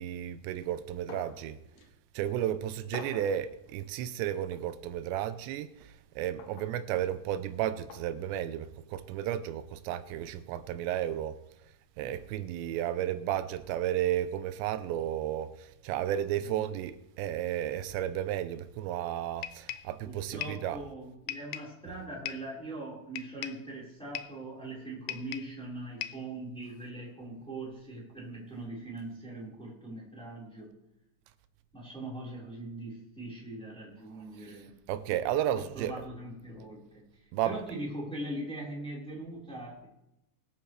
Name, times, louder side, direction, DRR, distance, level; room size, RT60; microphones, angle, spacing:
voice 1, 0.0-1.6 2.1-11.4 12.0-20.8 34.9-35.9 37.3-37.6, right 11 dB, 90° right, 2.9 m, -33 dB
sound 1, 1.1-1.4 1.8-1.9 2.9-3.4 4.5-4.7 6.4-6.7 7.9-8.1 9.3-9.5, left 5 dB, 70° left, 1.6 m, -45 dB
voice 2, 16.4-16.8 20.0-30.7 31.7-34.8 35.5-39.9, right 1 dB, ahead, 3.9 m, -41 dB
sound 2, 19.4-20.0 20.4-20.7 21.3-21.8 22.3-22.5 23.2-23.7 24.2-24.4 25.1-25.6 26.0-26.3, left 13 dB, 90° left, 2.8 m, -40 dB
22.0 x 9.3 x 3.3 m
omnidirectional pair, 5.0 m